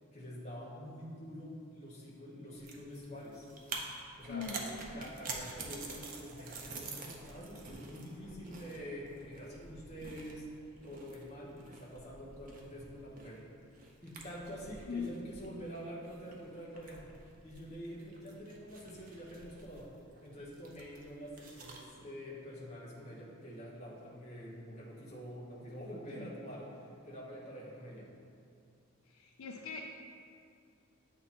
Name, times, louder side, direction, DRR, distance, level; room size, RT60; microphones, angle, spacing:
voice 1, 0.1-3.5 4.2-10.5 10.8-13.5 14.0-17.1 17.4-19.9 20.2-28.1, equal, 30° left, -6 dB, 1.1 m, -46 dB
sound 1, 2.5-21.9, right 3 dB, 35° right, 0.6 m, -48 dB
voice 2, 14.9-15.3 26.2-26.3 29.1-29.9, left 5 dB, 70° left, 1 dB, 0.4 m, -41 dB
8.4 x 2.9 x 4.2 m, 2.4 s
head